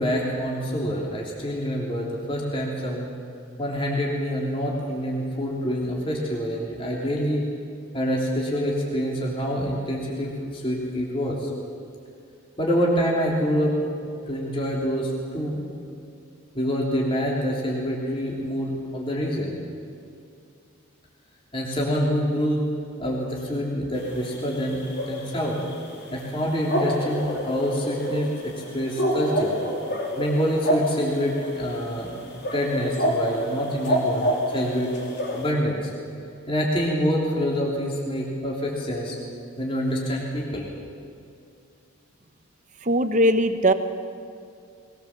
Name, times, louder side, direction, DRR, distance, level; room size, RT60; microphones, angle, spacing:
voice 1, 0.0-3.1 3.6-7.4 7.9-11.5 12.6-13.7 14.0-15.6 16.5-19.6 21.5-22.7 23.0-25.6 26.1-29.6 30.2-32.2 32.5-34.9 35.3-35.9 36.5-39.2 39.6-40.7, equal, 25° left, -3 dB, 3.3 m, -26 dB
sound 1, 24.0-35.5, equal, 55° left, 3.6 m, -29 dB
voice 2, 42.9-43.7, right 1 dB, 35° right, 9 dB, 1.1 m, -19 dB
22.0 x 20.0 x 7.4 m, 2.4 s
head